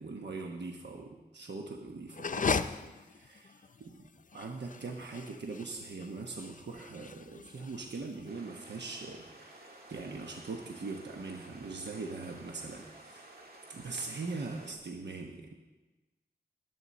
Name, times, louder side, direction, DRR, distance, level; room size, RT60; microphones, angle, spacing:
voice 1, 0.0-13.3 13.7-15.5, right 3 dB, 85° right, 1 dB, 1.0 m, -42 dB
sound 1, 2.1-8.2, left 5 dB, 50° left, 0.5 m, -37 dB
sound 2, 8.3-14.7, right 2 dB, 60° right, 2.0 m, -53 dB
20.0 x 8.1 x 4.1 m, 1.2 s
wide cardioid pair, 55°, 17 cm